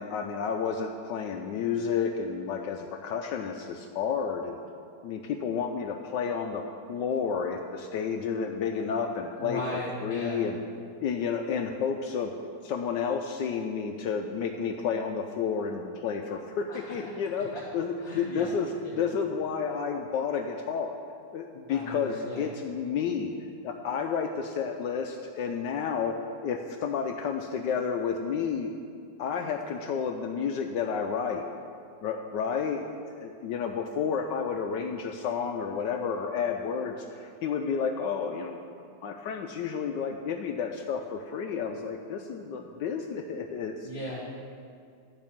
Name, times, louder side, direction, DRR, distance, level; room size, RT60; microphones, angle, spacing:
voice 1, 0.0-4.6 5.0-9.6 10.0-10.6 11.0-12.3 12.6-18.7 18.9-21.0 21.3-23.3 23.6-26.2 26.4-28.7 29.2-31.5 32.0-38.6 39.0-43.9, left 6 dB, 75° left, 4 dB, 1.1 m, -31 dB
voice 2, 9.4-10.4 16.7-16.8 17.5-17.6 18.0-18.5 18.8-19.0 21.7-22.4 43.8-44.2, left 1 dB, 50° left, -7 dB, 2.1 m, -36 dB
11.0 x 5.2 x 7.2 m, 2.3 s
omnidirectional pair, 2.2 m